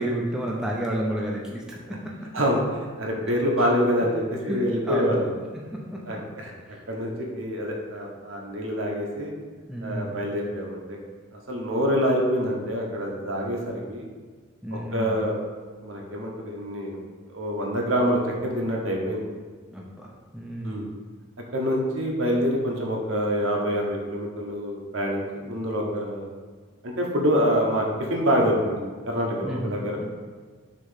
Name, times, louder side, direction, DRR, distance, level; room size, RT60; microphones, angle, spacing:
voice 1, 0.0-2.0 3.2-3.3 3.6-3.7 4.4-4.6 4.8-5.3 5.7-6.2 6.7-6.8 9.7-10.2 14.6-15.2 19.7-20.9 29.4-30.1, right 1 dB, 5° right, -3 dB, 0.6 m, -31 dB
voice 2, 3.0-5.3 6.1-6.5 6.9-9.3 9.8-11.0 11.3-14.0 14.7-15.3 15.8-17.0 17.3-19.2 20.6-20.9 21.5-26.3 26.8-28.8 29.1-30.0, equal, 65° right, -1 dB, 1.1 m, -26 dB
6.4 x 3.1 x 5.6 m, 1.5 s
head